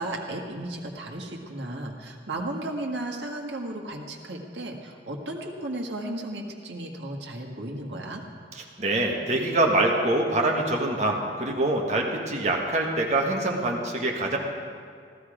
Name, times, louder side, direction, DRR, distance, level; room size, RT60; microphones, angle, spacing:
voice 1, 0.0-8.2, right 1 dB, 80° right, 1 dB, 1.7 m, -34 dB
voice 2, 8.5-14.4, right 2 dB, 40° right, 0 dB, 1.6 m, -25 dB
15.5 x 13.0 x 5.0 m, 2.1 s
head